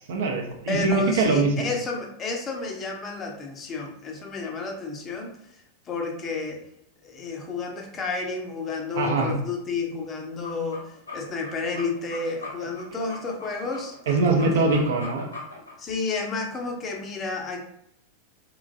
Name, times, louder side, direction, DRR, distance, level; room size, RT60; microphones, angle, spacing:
voice 1, 0.1-1.7 8.9-9.3 14.1-15.2, right 3 dB, 60° right, 1 dB, 0.5 m, -22 dB
voice 2, 0.7-5.4 5.9-6.7 7.0-14.6 15.8-17.6, left 4 dB, 25° left, 2 dB, 0.5 m, -31 dB
sound 1, 10.3-15.7, left 2 dB, 80° left, 0.9 m, -40 dB
3.1 x 2.3 x 2.3 m, 0.76 s
figure-of-eight pair, 90°, 0 cm